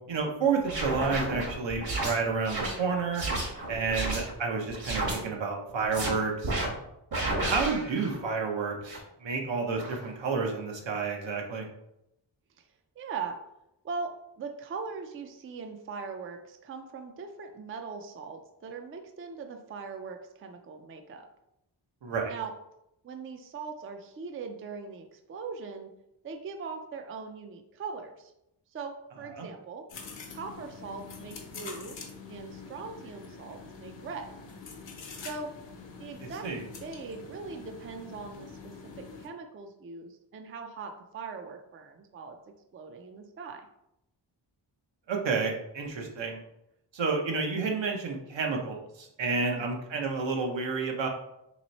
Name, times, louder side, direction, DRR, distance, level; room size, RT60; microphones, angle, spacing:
voice 1, 0.1-3.2 3.7-6.5 7.4-11.7 22.0-22.3 29.3-29.5 36.2-36.6 45.1-46.4 46.9-51.1, right 4 dB, 80° right, 1 dB, 0.9 m, -30 dB
sound 1, 0.6-4.3 4.7-5.2 5.7-6.1 6.4-6.7 7.1-8.2 8.8-9.0 9.8-10.0, right 2 dB, 55° right, 1.2 m, -32 dB
voice 2, 13.0-13.4 13.8-14.1 14.4-21.3 22.3-22.5 23.0-25.9 26.2-28.3 28.7-29.8 30.3-32.0 32.3-34.3 35.2-35.5 36.0-36.5 36.8-42.4 42.7-43.7 49.4-49.7, right 5 dB, 30° right, 5 dB, 0.4 m, -40 dB
sound 2, 29.9-39.3, left 4 dB, 75° left, 0.8 m, -45 dB
3.1 x 3.0 x 4.0 m, 0.83 s
wide cardioid pair, 130°, 44 cm